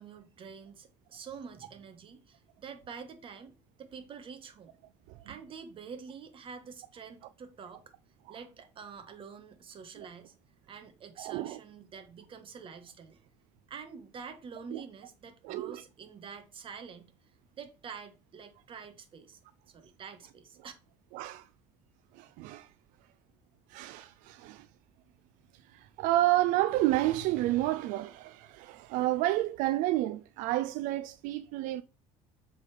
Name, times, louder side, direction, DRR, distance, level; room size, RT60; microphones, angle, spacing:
voice 1, 0.0-3.5 3.8-4.8 5.2-7.8 8.3-10.3 10.7-13.2 13.7-17.1 17.6-19.4 19.7-20.7, right 6 dB, 40° right, 1.6 m, -47 dB
voice 2, 11.2-11.6 14.7-14.8 15.4-15.7 21.1-21.4 22.2-22.7 23.7-24.7 25.7-31.8, right 15 dB, 80° right, 0.5 m, -30 dB
7.6 x 4.2 x 5.0 m
cardioid pair, 125°, 13 cm